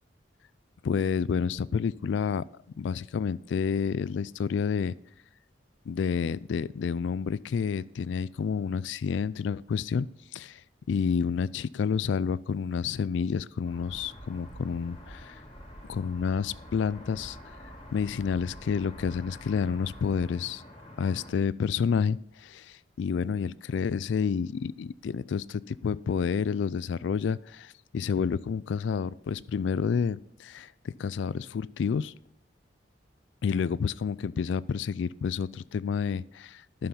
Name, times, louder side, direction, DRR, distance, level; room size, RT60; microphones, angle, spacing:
voice 1, 0.8-2.4 2.8-4.9 5.9-10.1 10.3-10.6 10.9-15.4 15.9-17.4 17.9-20.6 21.0-32.1 33.4-36.9, left 6 dB, 75° left, 20 dB, 0.3 m, -29 dB
sound 1, 13.6-21.3, equal, 30° left, 2.7 m, -46 dB
11.0 x 6.9 x 5.6 m, 0.72 s
head